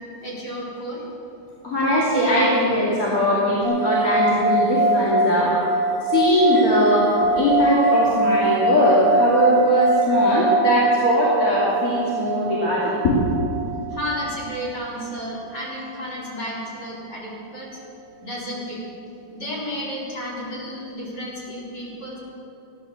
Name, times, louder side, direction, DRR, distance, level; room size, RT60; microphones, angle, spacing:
voice 1, 0.2-1.0 13.9-17.7 18.2-18.8 19.3-22.2, equal, 65° left, -7 dB, 5.0 m, -32 dB
voice 2, 1.6-5.6 6.0-13.2, left 1 dB, 50° left, -7 dB, 3.0 m, -20 dB
sound 1, 3.6-15.0, right 2 dB, 20° left, 4.3 m, -22 dB
15.5 x 11.5 x 7.1 m, 2.7 s
omnidirectional pair, 1.9 m